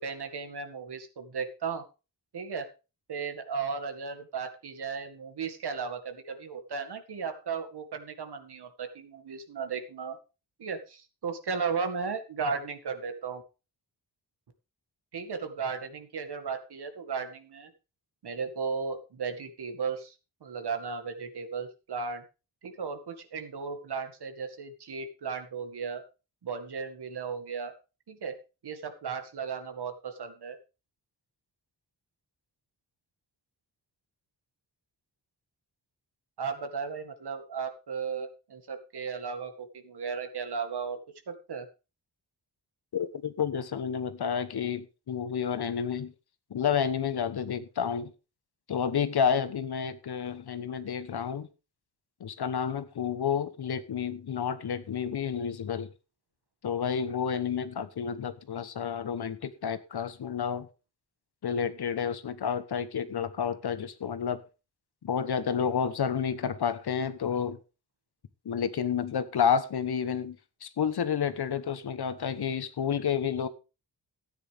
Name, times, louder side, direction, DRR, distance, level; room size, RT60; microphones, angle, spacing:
voice 1, 0.0-1.8 2.3-2.7 3.1-10.2 10.6-13.4 15.1-17.7 18.2-20.1 20.4-22.2 22.6-26.0 26.4-27.7 28.1-28.4 28.6-30.6 36.4-41.0 41.3-41.7, right 5 dB, 75° right, 2.1 m, -35 dB
voice 2, 42.9-46.1 46.5-48.1 48.7-51.5 52.2-55.9 56.6-60.7 61.4-64.4 65.0-67.6 68.4-70.4 70.6-73.5, left 7 dB, 70° left, 1.2 m, -30 dB
14.0 x 9.6 x 3.5 m
wide cardioid pair, 125°, 40 cm